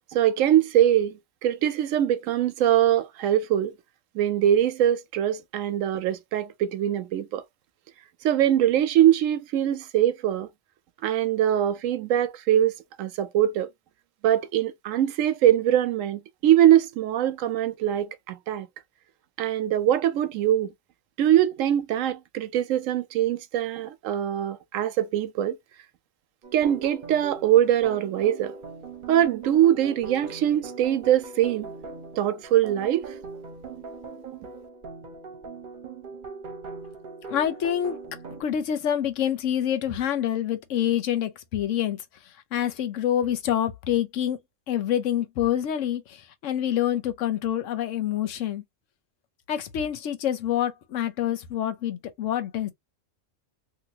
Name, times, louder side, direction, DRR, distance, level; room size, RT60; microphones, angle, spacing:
voice 1, 0.1-3.7 4.1-7.4 8.2-10.5 11.0-13.7 14.2-18.7 19.4-20.7 21.2-25.6 26.5-28.5 29.1-31.7 32.2-33.1, right 11 dB, 90° right, 1.0 m, -22 dB
sound 1, 26.4-38.4, right 4 dB, 45° right, 0.8 m, -40 dB
voice 2, 37.3-38.0 38.4-42.0 42.5-44.4 44.7-48.6 49.5-52.7, left 10 dB, 80° left, 1.0 m, -26 dB
2.8 x 2.8 x 2.7 m
omnidirectional pair, 1.3 m